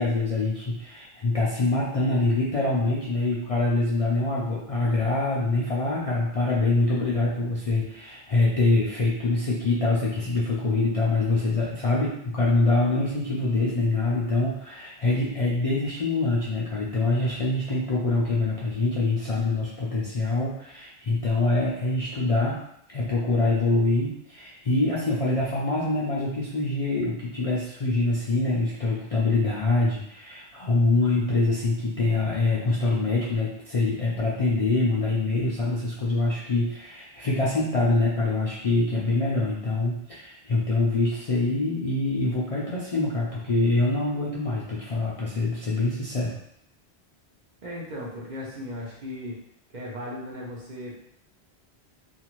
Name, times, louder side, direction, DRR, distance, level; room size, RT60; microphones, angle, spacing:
voice 1, 0.0-22.6 22.9-46.3, left 2 dB, 50° left, -6 dB, 0.4 m, -25 dB
voice 2, 47.6-49.4 49.7-50.9, left 1 dB, 50° right, -4 dB, 0.7 m, -36 dB
2.6 x 2.4 x 3.0 m, 0.73 s
omnidirectional pair, 1.1 m